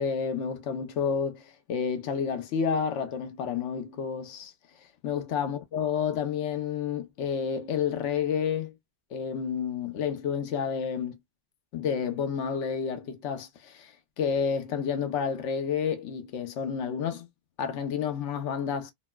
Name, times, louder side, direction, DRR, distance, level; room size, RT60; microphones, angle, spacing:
voice 1, 0.0-4.5 5.0-8.7 9.1-11.2 11.7-17.3 17.6-18.9, left 7 dB, 75° left, 1.1 m, -30 dB
4.0 x 2.1 x 2.2 m
omnidirectional pair, 1.2 m